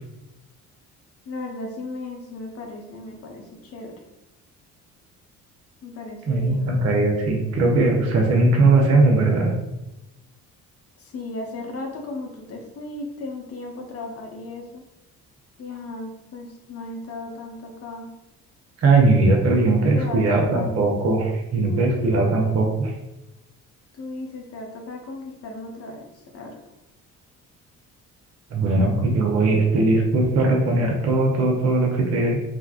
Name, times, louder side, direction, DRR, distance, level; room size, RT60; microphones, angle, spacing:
voice 1, 1.2-4.0 5.8-6.7 11.0-14.8 15.6-18.1 19.9-20.7 21.6-22.4 23.9-26.6, left 2 dB, 35° left, 1 dB, 0.7 m, -35 dB
voice 2, 6.3-9.5 18.8-22.9 28.5-32.4, right 2 dB, 35° right, 0 dB, 0.7 m, -19 dB
3.3 x 2.0 x 2.4 m, 0.95 s
figure-of-eight pair, 50°, 43 cm